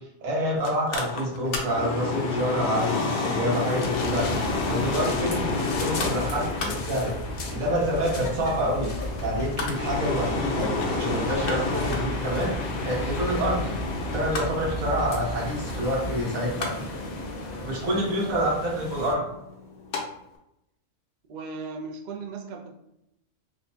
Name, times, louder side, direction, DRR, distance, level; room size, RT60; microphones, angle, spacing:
voice 1, 0.2-4.3 4.7-7.1 7.5-8.9 9.2-12.5 12.8-13.7 14.1-16.7 17.7-19.2, equal, 90° right, -4 dB, 1.5 m, -27 dB
Mechanical fan, 0.6-20.0 20.4-20.5, left 3 dB, 65° left, 0.9 m, -31 dB
sound 1, 3.5-19.1, left 2 dB, 80° left, 0.4 m, -36 dB
sound 2, 3.9-16.1, equal, 25° left, 0.6 m, -36 dB
voice 2, 21.3-22.7, right 5 dB, 55° right, 1 dB, 0.5 m, -36 dB
4.3 x 2.2 x 2.7 m, 0.84 s
omnidirectional pair, 1.4 m